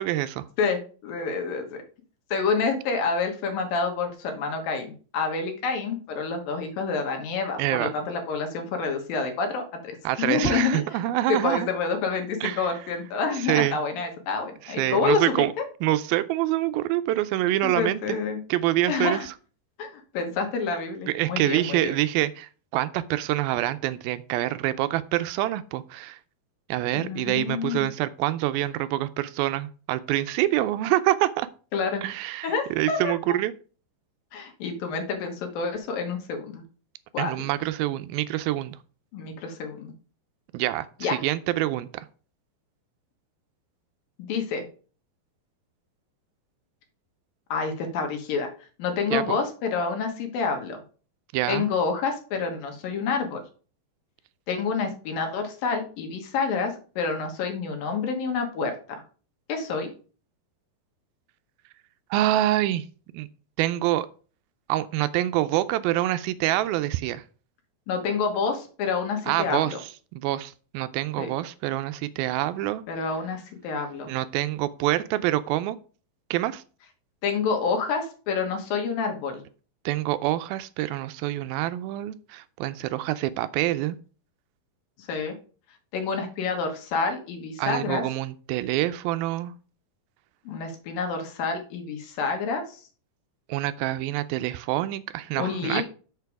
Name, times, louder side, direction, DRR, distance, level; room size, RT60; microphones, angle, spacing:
voice 1, 0.0-0.4 7.6-7.9 10.0-11.7 12.4-12.7 13.4-13.8 14.7-15.5 15.8-18.2 18.5-19.3 21.1-26.2 26.7-31.5 32.0-33.5 37.2-38.8 40.5-42.1 49.1-49.2 51.3-51.7 62.1-62.9 63.1-63.3 63.6-64.1 64.7-67.2 69.3-69.8 70.1-72.8 74.1-75.8 76.3-76.6 79.9-84.0 87.6-89.5 93.5-95.8, right 15 dB, 85° right, 13 dB, 2.4 m, -26 dB
voice 2, 0.6-1.8 2.3-10.8 11.3-15.6 17.6-18.4 18.9-19.3 19.8-21.9 26.9-27.9 31.7-32.0 32.4-33.2 34.3-36.6 37.1-37.3 39.1-39.9 41.0-41.2 44.2-44.6 47.5-48.5 48.8-50.8 51.5-53.4 54.5-59.0 59.5-59.9 67.9-69.8 71.2-71.3 72.9-74.1 77.2-79.4 85.0-85.3 85.9-88.0 90.5-92.8 95.4-95.8, left 5 dB, 75° left, 4 dB, 3.1 m, -28 dB
6.9 x 6.6 x 4.7 m, 0.39 s
omnidirectional pair, 4.2 m